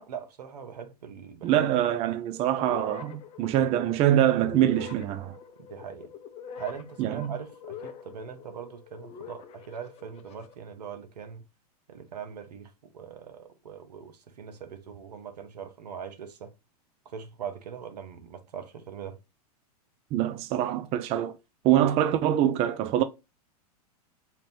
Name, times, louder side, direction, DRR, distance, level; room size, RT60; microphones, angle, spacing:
voice 1, 0.0-1.6 2.1-2.2 5.7-6.1 6.6-11.4 11.9-16.5 17.0-19.2, right 7 dB, 90° right, 0.8 m, -41 dB
voice 2, 1.4-5.4 7.0-7.4 20.1-21.4 21.6-23.0, right 11 dB, 30° right, 0.4 m, -24 dB
sound 1, 2.6-10.5, left 7 dB, 30° left, 0.5 m, -44 dB
2.8 x 2.6 x 3.4 m
hypercardioid pair, 120°, 20 cm